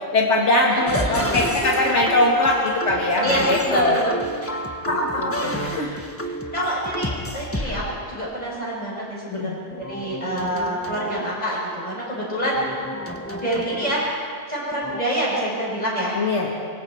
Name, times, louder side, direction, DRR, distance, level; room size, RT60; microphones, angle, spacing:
voice 1, 0.0-4.0 5.2-5.9 9.3-9.5 16.2-16.5, left 2 dB, 85° left, -2 dB, 2.1 m, -21 dB
voice 2, 0.7-1.4 3.2-4.1 4.9-5.2 5.6-6.0 6.2-7.8 8.1-12.9 13.4-14.0 14.5-16.2, right 1 dB, 35° left, -5 dB, 7.5 m, -27 dB
sound 1, 0.9-7.9 9.7-11.4 12.4-14.1 14.7-15.0, equal, 10° left, 1.3 m, -30 dB
24.5 x 23.0 x 4.6 m, 2.1 s
omnidirectional pair, 1.2 m